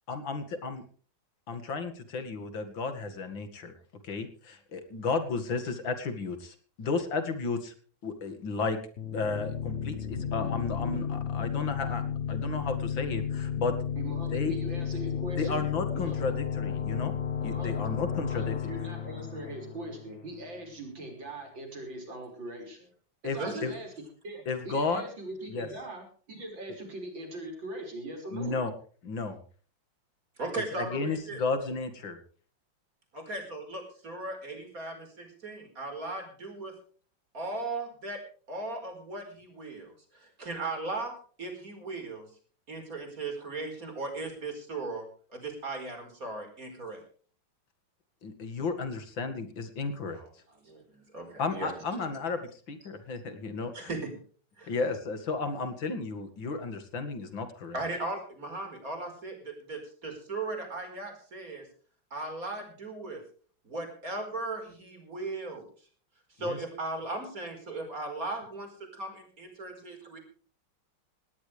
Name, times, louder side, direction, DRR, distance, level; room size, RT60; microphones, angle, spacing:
voice 1, 0.1-0.8 1.5-3.7 4.0-7.7 8.0-8.8 9.1-12.0 12.3-13.7 14.3-14.5 15.4-17.1 17.4-18.5 23.2-23.7 24.5-25.0 25.5-25.7 28.3-28.7 29.0-29.4 30.7-32.2 48.2-50.2 51.4-53.9 54.7-57.8 66.4-66.6, left 4 dB, 70° left, 8 dB, 2.8 m, -33 dB
sound 1, 9.0-20.5, left 8 dB, 45° left, 1.1 m, -33 dB
voice 2, 14.0-15.6 15.9-16.2 17.5-17.8 18.3-22.9 23.2-23.9 24.2-28.6, right 1 dB, 70° right, 3 dB, 6.3 m, -41 dB
voice 3, 23.4-23.7 30.4-31.4 33.1-36.7 37.3-38.2 38.5-42.3 42.7-45.1 45.3-47.0 50.1-50.3 50.6-52.2 53.7-54.1 54.6-54.7 57.7-61.7 62.1-63.2 63.6-65.6 66.3-70.2, right 2 dB, 45° right, 5 dB, 5.1 m, -37 dB
18.5 x 18.0 x 3.4 m, 0.43 s
omnidirectional pair, 2.2 m